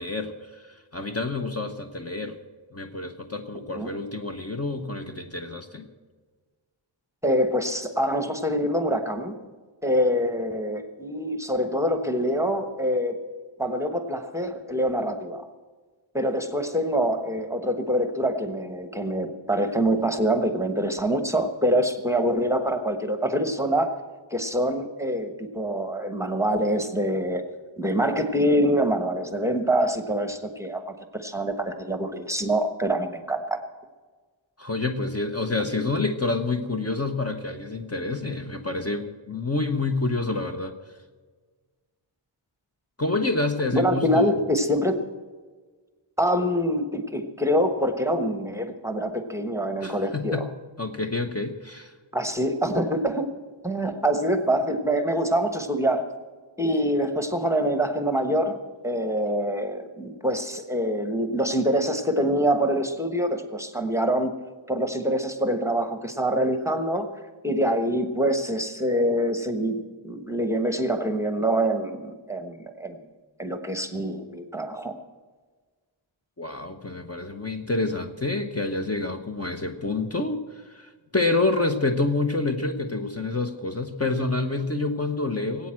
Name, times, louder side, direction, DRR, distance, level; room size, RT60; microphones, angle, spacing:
voice 1, 0.0-2.4 2.7-5.9 34.6-40.7 43.0-44.3 49.8-50.5 50.8-51.9 76.4-85.7, left 3 dB, 30° left, 5 dB, 1.0 m, -28 dB
voice 2, 7.2-9.4 9.8-13.2 13.6-15.5 16.1-23.9 24.3-27.4 27.8-30.8 31.1-33.6 43.7-45.1 46.2-50.5 52.1-53.3 53.6-56.0 56.6-64.3 64.7-67.1 67.4-73.0 73.4-74.9, equal, 5° right, 7 dB, 1.1 m, -25 dB
18.5 x 8.7 x 7.6 m, 1.4 s
wide cardioid pair, 95°, 47 cm